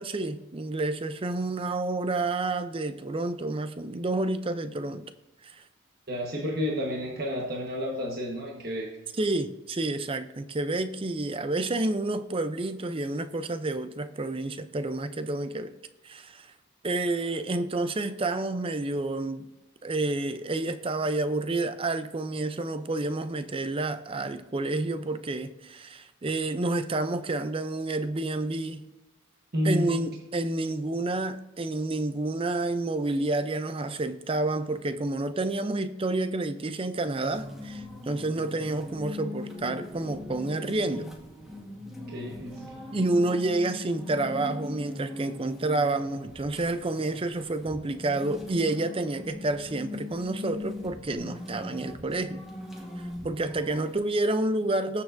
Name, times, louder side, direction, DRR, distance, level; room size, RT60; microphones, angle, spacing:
voice 1, 0.0-5.1 5.4-5.6 9.1-15.7 16.0-16.5 16.8-19.5 19.8-28.8 29.6-41.1 42.9-52.4 53.2-55.0, right 2 dB, 25° right, 0.5 m, -29 dB
voice 2, 6.1-8.9 29.5-30.0 42.1-42.7, equal, 45° right, 1.3 m, -30 dB
sound 1, 37.0-53.9, left 2 dB, ahead, 1.3 m, -40 dB
20.0 x 7.2 x 2.6 m
head